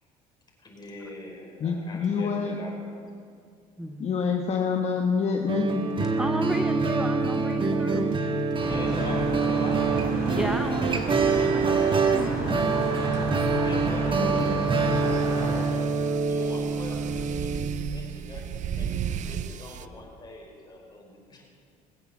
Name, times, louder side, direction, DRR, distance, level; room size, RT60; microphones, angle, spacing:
voice 1, 0.6-3.2 8.6-10.5 13.6-15.9 16.2-21.4, left 2 dB, 25° left, -1 dB, 5.0 m, -43 dB
voice 2, 1.6-2.6 4.0-5.8 14.2-14.4, left 5 dB, 40° left, 2 dB, 1.2 m, -26 dB
voice 3, 3.8-4.2 6.2-8.2 8.9-9.2 10.4-13.1, right 1 dB, 5° right, 7 dB, 0.7 m, -35 dB
sound 1, 5.5-17.7, right 4 dB, 30° right, 1.5 m, -25 dB
sound 2, 7.9-8.1 9.8-19.9, right 9 dB, 50° right, 0.6 m, -37 dB
sound 3, 8.6-15.6, right 1 dB, 70° right, 4.8 m, -32 dB
19.5 x 8.2 x 7.3 m, 2.3 s
supercardioid pair, 90°, 16 cm